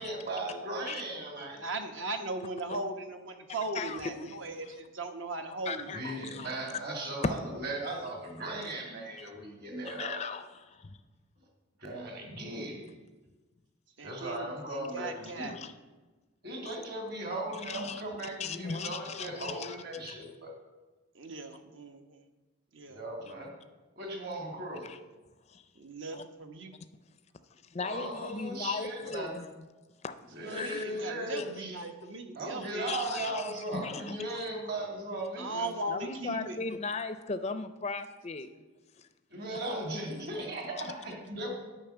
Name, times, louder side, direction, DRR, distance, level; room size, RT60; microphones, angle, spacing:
voice 1, 0.0-1.6 5.9-10.2 11.8-12.9 14.0-15.5 16.4-20.5 22.9-23.5 24.0-24.9 27.8-29.3 30.4-31.8 32.4-35.7 39.3-41.5, right 1 dB, 50° right, 0 dB, 2.3 m, -37 dB
voice 2, 1.6-5.9 14.0-15.6 19.4-19.7 21.1-22.2 22.7-23.0 25.8-26.8 30.4-33.2 35.4-36.6, right 2 dB, 65° right, 6 dB, 1.0 m, -38 dB
voice 3, 3.7-4.4 4.6-4.8 5.7-6.5 7.2-7.4 9.8-11.0 15.4-15.7 16.6-16.7 17.5-18.0 18.4-19.8 20.1-20.2 24.8-25.0 25.5-25.6 26.1-26.2 27.6-29.6 30.0-30.1 30.4-30.8 31.4-31.5 32.9-34.4 35.9-38.5 39.0-39.1 39.5-39.8 40.2-40.3 40.8-40.9, left 4 dB, 30° left, 10 dB, 0.4 m, -37 dB
8.9 x 5.6 x 8.0 m, 1.2 s
head